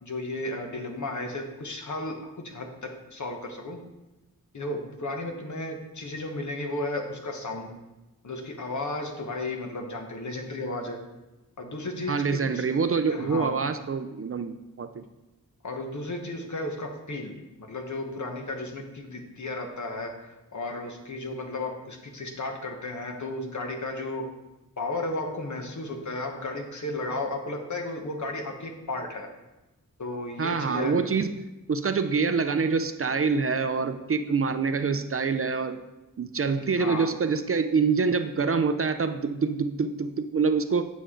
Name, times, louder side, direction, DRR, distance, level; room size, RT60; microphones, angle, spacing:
voice 1, 0.0-3.8 4.5-7.7 8.2-11.0 11.6-12.6 13.1-13.5 15.6-24.2 24.8-29.3 30.0-30.9 36.5-37.1, left 2 dB, 55° left, 3 dB, 1.2 m, -34 dB
voice 2, 12.1-15.0 30.4-31.4 31.7-35.8 36.2-40.8, right 5 dB, 40° right, 9 dB, 0.4 m, -26 dB
8.9 x 6.3 x 3.7 m, 1.0 s
wide cardioid pair, 100°, 34 cm